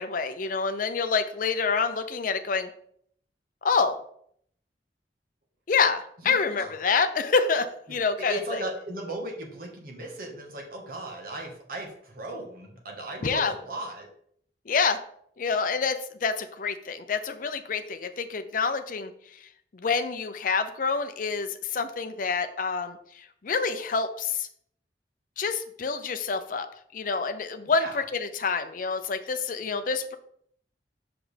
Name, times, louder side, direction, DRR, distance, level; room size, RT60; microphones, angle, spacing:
voice 1, 0.0-2.7 3.6-4.0 5.7-8.6 13.2-13.5 14.7-15.0 15.4-19.1 19.7-24.5 25.4-26.7 26.9-30.2, left 5 dB, 50° left, 8 dB, 0.5 m, -27 dB
voice 2, 6.2-6.7 8.2-14.1 27.7-28.0, right 1 dB, 55° right, 2 dB, 1.3 m, -37 dB
6.0 x 5.1 x 3.3 m, 0.66 s
head